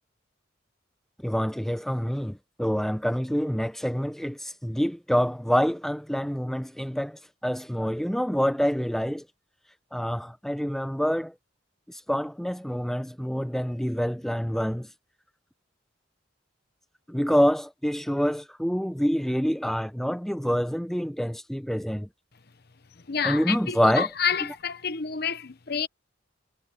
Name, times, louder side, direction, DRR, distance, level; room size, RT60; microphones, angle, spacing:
voice 1, 1.2-9.2 9.9-11.3 11.9-14.9 17.1-22.1 23.2-24.1, equal, ahead, 0.8 m, -26 dB
voice 2, 23.1-25.9, left 7 dB, 55° left, 1.0 m, -29 dB
head